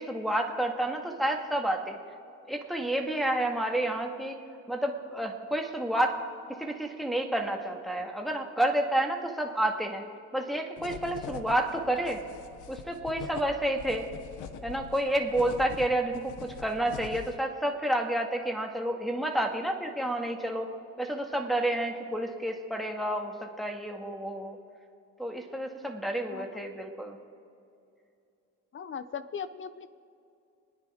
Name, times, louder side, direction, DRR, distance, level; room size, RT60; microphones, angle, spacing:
voice 1, 0.0-2.0 2.5-4.4 4.7-6.2 6.5-10.0 10.3-12.2 12.7-14.1 14.6-20.7 21.0-24.6 25.2-27.2, right 1 dB, ahead, 1 dB, 1.8 m, -30 dB
sound 1, 10.8-17.4, left 7 dB, 80° left, 0.8 m, -44 dB
voice 2, 26.3-26.7 28.7-29.9, left 7 dB, 40° left, 13 dB, 0.8 m, -39 dB
28.0 x 9.9 x 3.6 m, 2.5 s
cardioid pair, 90°, 30 cm